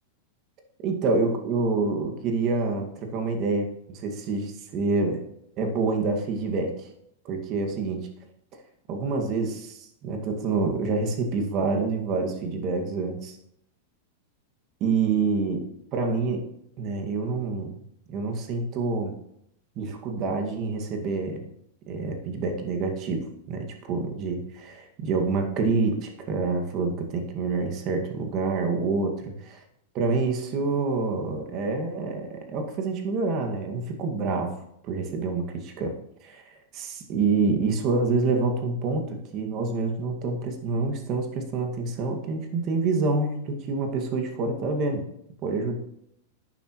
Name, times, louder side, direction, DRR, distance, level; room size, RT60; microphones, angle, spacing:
voice 1, 0.8-5.2 5.6-6.9 7.2-8.1 8.9-13.4 14.8-16.5 16.8-17.8 18.1-19.1 19.8-21.4 21.9-29.6 29.9-34.6 34.8-35.9 36.2-45.0 45.4-45.8, right 3 dB, 40° right, 3 dB, 2.0 m, -27 dB
12.0 x 9.1 x 3.1 m, 0.74 s
supercardioid pair, 135°, 0 cm